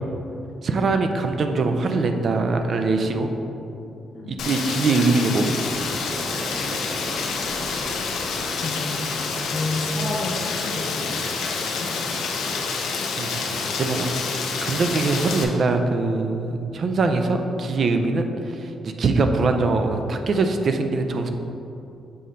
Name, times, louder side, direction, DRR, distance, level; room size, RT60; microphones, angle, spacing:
voice 1, 0.6-3.3 4.3-5.6 13.2-14.1 14.6-21.3, right 3 dB, 40° right, 6 dB, 0.4 m, -22 dB
voice 2, 4.1-4.5 8.6-9.2 9.5-11.1 11.5-11.9, left 2 dB, 35° left, -2 dB, 0.5 m, -31 dB
Rain, 4.4-15.4, left 4 dB, 75° left, 0.6 m, -28 dB
sound 1, 5.7-11.8, equal, 20° right, 0.8 m, -40 dB
7.5 x 2.7 x 5.0 m, 2.8 s
cardioid pair, 175°, 0 cm